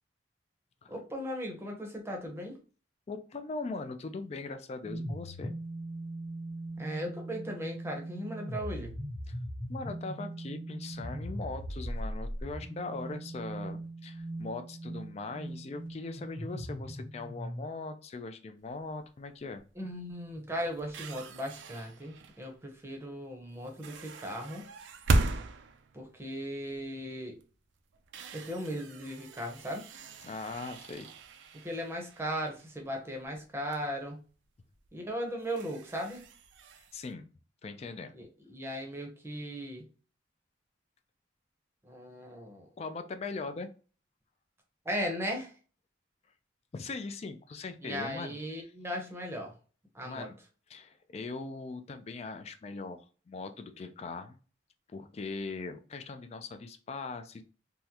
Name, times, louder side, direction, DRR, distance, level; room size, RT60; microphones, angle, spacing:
voice 1, 0.9-2.6 6.8-8.9 19.8-24.7 25.9-27.4 28.3-29.9 31.6-34.2 34.9-36.3 38.1-39.8 41.8-42.7 44.8-45.5 47.8-49.5 49.9-50.3, equal, 15° right, 2 dB, 0.7 m, -37 dB
voice 2, 3.1-5.5 9.3-9.4 9.7-19.6 30.2-31.1 36.9-37.3 37.6-38.1 42.8-43.7 46.7-48.4 50.0-50.4 50.7-54.4 54.9-57.4, left 3 dB, 35° left, 9 dB, 0.3 m, -40 dB
sound 1, 4.8-17.7, right 1 dB, 10° left, 0.9 m, -40 dB
sound 2, 18.6-19.0 19.6-19.8 20.1-22.6 23.6-27.0 27.4-27.5 27.9-33.4 33.7-33.8 34.7-34.9 35.3-37.1, right 2 dB, 80° right, 0.4 m, -37 dB
3.5 x 2.1 x 2.8 m, 0.37 s
head